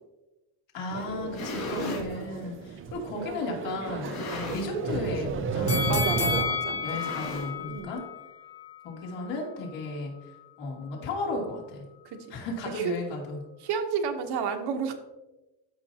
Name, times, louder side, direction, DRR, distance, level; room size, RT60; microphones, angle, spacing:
voice 1, 0.7-6.1 6.8-8.0 8.8-10.1 10.6-11.8 12.3-13.4, left 2 dB, 75° left, -2 dB, 2.9 m, -34 dB
sound 1, 0.9-6.4, right 5 dB, 30° right, 0.4 m, -33 dB
sound 2, 1.1-2.1 2.9-3.0 3.9-4.9 5.2-5.5 5.7-5.8 6.7-7.8, left 3 dB, 50° left, 2.8 m, -37 dB
sound 3, 5.7-8.8 9.2-9.3, left 5 dB, 30° left, 1.3 m, -31 dB
voice 2, 5.9-6.8 7.1-7.2 7.7-8.0 12.0-12.4 12.7-12.9 13.6-14.9, right 6 dB, 55° right, 6 dB, 1.0 m, -31 dB
13.5 x 5.7 x 2.8 m, 1.0 s
cardioid pair, 165°, 45 cm